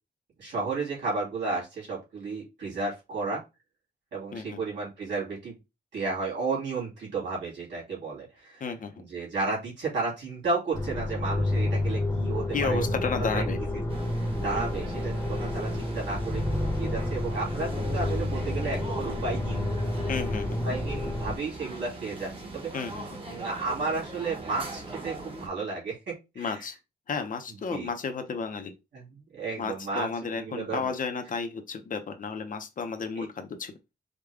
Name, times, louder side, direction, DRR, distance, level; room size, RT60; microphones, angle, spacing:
voice 1, 0.4-3.4 4.1-5.6 5.9-8.7 9.0-12.9 13.1-13.5 14.4-19.6 20.6-22.7 23.3-26.6 27.5-27.9 28.9-30.9 33.1-33.2, right 3 dB, 85° right, 2.7 m, -33 dB
voice 2, 8.6-9.0 12.5-13.6 20.1-20.6 22.7-23.0 26.4-26.7 27.1-28.7 29.6-33.7, left 5 dB, 50° left, 0.7 m, -32 dB
space energy generator, 10.7-21.4, left 1 dB, 15° left, 0.8 m, -29 dB
sound 1, 13.9-25.5, right 2 dB, 30° right, 1.0 m, -40 dB
5.0 x 2.2 x 3.4 m
wide cardioid pair, 165°, 18 cm